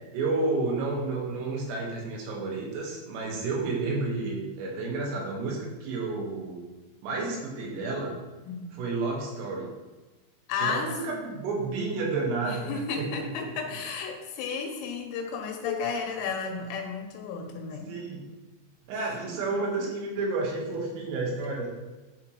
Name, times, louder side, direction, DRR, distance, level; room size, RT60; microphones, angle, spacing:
voice 1, 0.1-6.6 7.0-8.1 8.7-9.7 10.6-13.5 17.9-18.2 18.9-21.7, right 3 dB, 80° right, -1 dB, 4.0 m, -31 dB
voice 2, 10.5-11.3 12.4-17.9, left 5 dB, 85° left, 2 dB, 3.8 m, -33 dB
11.0 x 4.9 x 3.0 m, 1.2 s
omnidirectional pair, 5.9 m